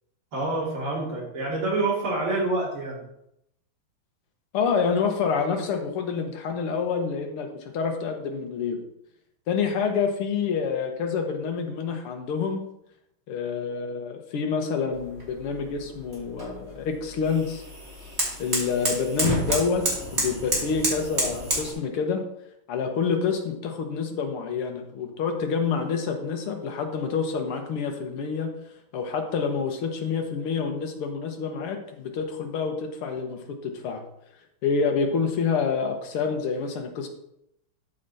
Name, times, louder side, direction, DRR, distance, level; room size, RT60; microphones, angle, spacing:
voice 1, 0.3-3.0, right 2 dB, 75° right, -4 dB, 3.7 m, -27 dB
voice 2, 4.5-8.8 9.5-12.6 13.3-17.6 18.4-19.9 20.1-22.2 22.7-28.5 28.9-34.0 34.6-37.1, left 5 dB, 85° left, 4 dB, 2.2 m, -27 dB
sound 1, 14.9-21.7, right 1 dB, 30° right, 2.8 m, -30 dB
12.5 x 5.6 x 4.1 m, 0.79 s
omnidirectional pair, 2.4 m